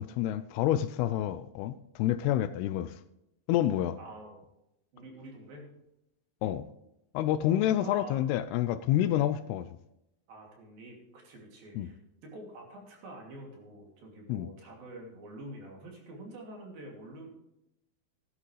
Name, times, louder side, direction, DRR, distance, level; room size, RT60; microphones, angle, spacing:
voice 1, 0.0-3.0 3.5-4.0 6.4-6.7 7.1-9.7 11.8-11.9 14.3-14.5, left 12 dB, 80° left, 13 dB, 2.4 m, -28 dB
voice 2, 4.0-4.4 4.9-5.7 7.5-8.2 10.3-17.3, right 1 dB, 60° right, 0 dB, 4.3 m, -47 dB
15.5 x 11.0 x 3.3 m, 0.85 s
omnidirectional pair, 4.8 m